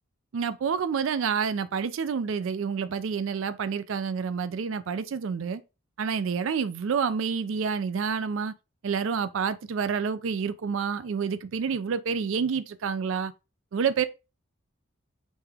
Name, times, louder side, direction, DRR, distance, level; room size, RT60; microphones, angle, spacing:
voice 1, 0.3-5.6 6.0-8.5 8.8-13.3 13.7-14.0, right 6 dB, 70° right, 0.4 m, -28 dB
5.3 x 2.8 x 3.4 m
head